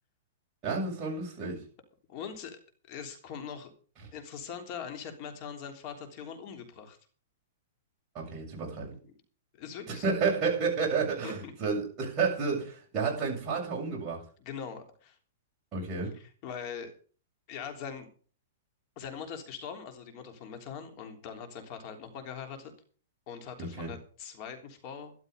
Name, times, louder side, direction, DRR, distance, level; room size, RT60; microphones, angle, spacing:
voice 1, 0.6-1.6 8.1-9.0 9.9-14.2 15.7-16.1 23.6-23.9, right 5 dB, 20° right, -2 dB, 7.3 m, -31 dB
voice 2, 2.1-2.6 2.9-3.7 4.1-7.0 9.0-9.1 9.6-10.1 11.2-11.5 14.4-15.2 16.1-16.9 17.5-18.1 18.9-22.7 23.3-25.1, left 7 dB, 35° left, 6 dB, 3.3 m, -42 dB
13.0 x 12.0 x 5.3 m, 0.42 s
hypercardioid pair, 160°, 0 cm